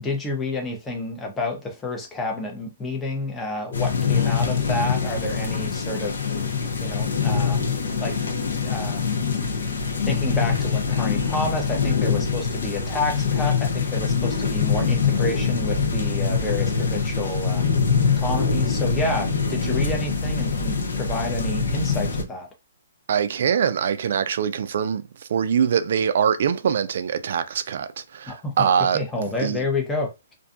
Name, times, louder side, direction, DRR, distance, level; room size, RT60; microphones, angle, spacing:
voice 1, 0.0-6.5 6.8-7.7 8.0-8.1 8.6-9.2 9.5-9.6 10.1-22.5 28.3-30.1, left 2 dB, 10° left, 0.6 m, -29 dB
sound 1, 3.7-22.2, left 5 dB, 75° left, 0.7 m, -24 dB
voice 2, 23.1-25.0 25.3-29.6, right 7 dB, 55° right, 0.3 m, -23 dB
2.5 x 2.3 x 2.5 m
hypercardioid pair, 160°, 0 cm